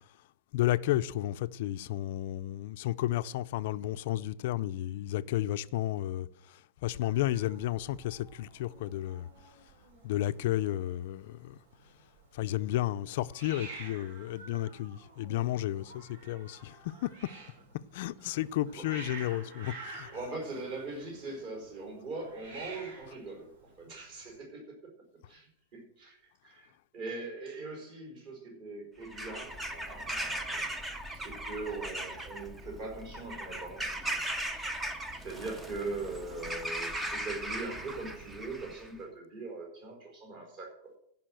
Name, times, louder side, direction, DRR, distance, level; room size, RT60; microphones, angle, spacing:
voice 1, 0.5-9.3 10.0-11.6 12.3-17.1 17.9-20.1, left 14 dB, 50° left, 0.4 m, -32 dB
Hiss, 7.0-24.3, right 3 dB, 60° right, 4.5 m, -50 dB
voice 2, 20.1-24.9 25.3-30.7 31.1-34.2 34.5-34.8 35.2-40.9, right 3 dB, 35° right, 4.9 m, -41 dB
Bird vocalization bird call bird song / Crow, 29.0-38.9, right 1 dB, 5° right, 0.6 m, -38 dB
14.5 x 5.6 x 7.6 m
supercardioid pair, 180°, 0 cm